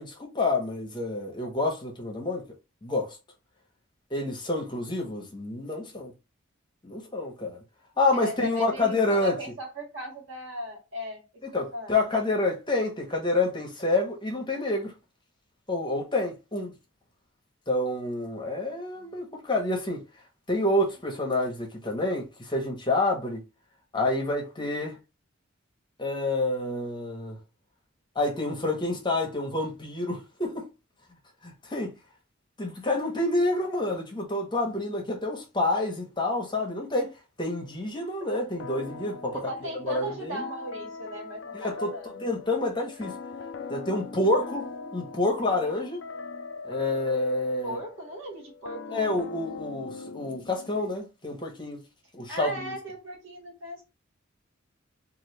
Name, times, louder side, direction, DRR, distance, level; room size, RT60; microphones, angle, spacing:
voice 1, 0.0-2.4 2.8-3.2 4.1-6.1 6.8-7.6 8.0-9.4 11.5-14.9 15.7-16.7 17.7-20.0 20.5-23.4 23.9-25.0 26.0-27.4 28.1-30.7 31.4-32.0 32.6-39.4 39.8-40.5 41.5-41.9 42.2-43.2 43.7-46.0 46.6-47.8 48.9-51.8 52.1-52.7, left 2 dB, 25° left, 0.9 m, -28 dB
voice 2, 8.1-11.2 11.5-11.9 18.9-19.1 39.3-42.2 47.6-49.1 52.3-53.8, equal, 70° right, 1.5 m, -37 dB
sound 1, 38.6-51.0, left 4 dB, 60° left, 0.4 m, -41 dB
3.1 x 2.5 x 3.1 m
head